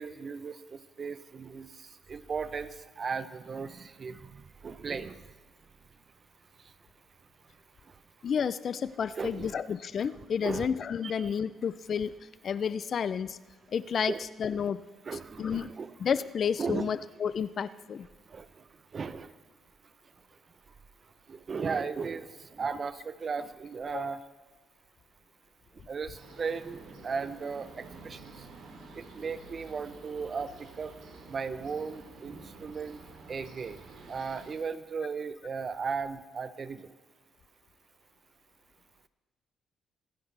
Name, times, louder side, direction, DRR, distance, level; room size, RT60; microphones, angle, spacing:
voice 1, 0.0-5.2 9.2-9.5 10.4-10.7 11.0-11.3 14.1-14.2 15.0-15.9 16.6-16.9 18.3-18.5 18.9-19.3 21.3-24.2 25.9-28.2 28.9-30.9 31.3-33.0 33.3-33.8 34.1-36.9, right 5 dB, 40° right, 13 dB, 0.8 m, -36 dB
voice 2, 8.2-12.1 12.4-13.4 13.7-14.1 14.4-14.8 15.4-15.7 16.0-18.1 23.9-24.1, left 7 dB, 55° left, 16 dB, 0.5 m, -31 dB
sound 1, 26.1-34.5, right 3 dB, 75° right, 2.9 m, -50 dB
25.5 x 10.0 x 3.4 m, 1.4 s
cardioid pair, 90°, 0 cm